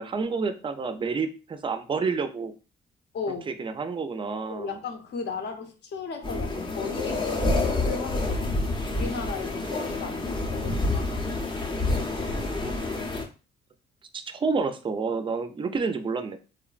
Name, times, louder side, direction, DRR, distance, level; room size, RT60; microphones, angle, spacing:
voice 1, 0.0-2.5 3.5-4.8 12.5-12.7 14.1-16.4, right 4 dB, 25° right, 9 dB, 0.4 m, -29 dB
voice 2, 3.1-3.4 4.5-11.2, left 4 dB, 60° left, 4 dB, 0.7 m, -36 dB
sound 1, 6.2-13.2, left 2 dB, 25° left, 0.6 m, -28 dB
3.1 x 2.1 x 2.4 m, 0.34 s
cardioid pair, 90°, 20 cm